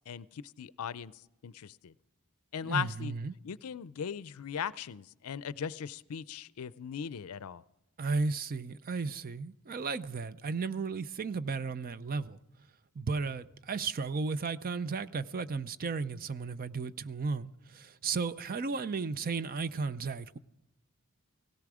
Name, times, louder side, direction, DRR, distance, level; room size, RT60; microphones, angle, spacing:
voice 1, 0.1-1.1 1.4-1.9 2.5-3.1 3.4-7.6, left 7 dB, 75° left, 0.5 m, -38 dB
voice 2, 2.6-3.3 8.0-12.4 13.0-20.4, right 4 dB, 40° right, 0.5 m, -34 dB
17.0 x 17.0 x 4.9 m
head